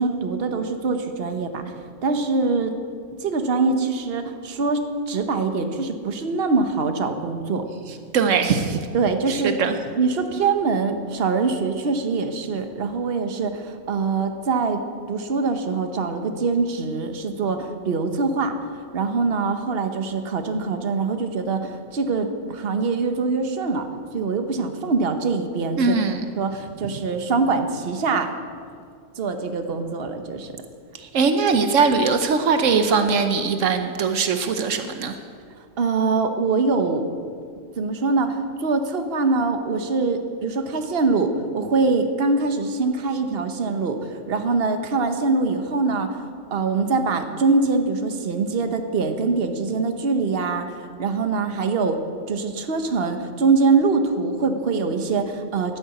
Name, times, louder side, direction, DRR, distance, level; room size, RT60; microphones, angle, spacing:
voice 1, 0.0-1.7 2.0-2.7 3.2-7.6 8.9-9.5 10.0-14.8 15.1-18.5 18.9-23.9 24.1-26.0 26.4-28.3 29.2-30.5 35.8-37.1 37.8-46.2 46.5-50.7 51.0-52.0 52.3-55.8, right 4 dB, 50° right, 7 dB, 1.2 m, -23 dB
voice 2, 8.1-8.9 9.3-9.8 25.8-26.2 30.9-35.2, right 5 dB, 80° right, 7 dB, 1.2 m, -21 dB
10.5 x 10.5 x 8.1 m, 2.2 s
omnidirectional pair, 1.3 m